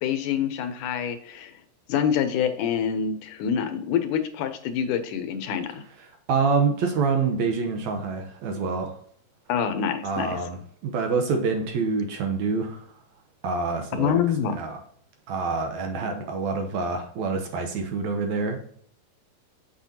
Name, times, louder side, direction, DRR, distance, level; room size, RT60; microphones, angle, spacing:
voice 1, 0.0-1.5 1.9-5.8 9.5-10.4 14.0-14.6, left 8 dB, 75° left, 9 dB, 2.2 m, -26 dB
voice 2, 6.0-8.9 10.0-10.6 10.8-12.9 13.4-14.1 14.4-14.8 15.3-18.6, right 4 dB, 70° right, 4 dB, 2.0 m, -26 dB
7.5 x 6.6 x 2.8 m, 0.62 s
omnidirectional pair, 3.8 m